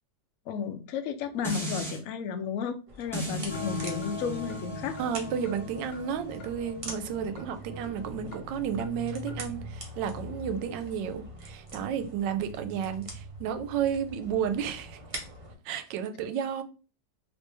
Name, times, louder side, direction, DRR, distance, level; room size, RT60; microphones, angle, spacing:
voice 1, 0.5-5.0, left 6 dB, 85° left, 0.7 m, -33 dB
sound 1, 1.4-2.0 3.1-8.3 8.7-8.8, equal, ahead, 0.6 m, -39 dB
sound 2, 2.9-15.5, equal, 50° right, 0.4 m, -43 dB
sound 3, 3.5-9.5, left 3 dB, 60° left, 1.0 m, -42 dB
voice 2, 5.0-15.0 15.6-16.6, right 8 dB, 75° right, 1.2 m, -32 dB
3.0 x 3.0 x 3.3 m
omnidirectional pair, 2.0 m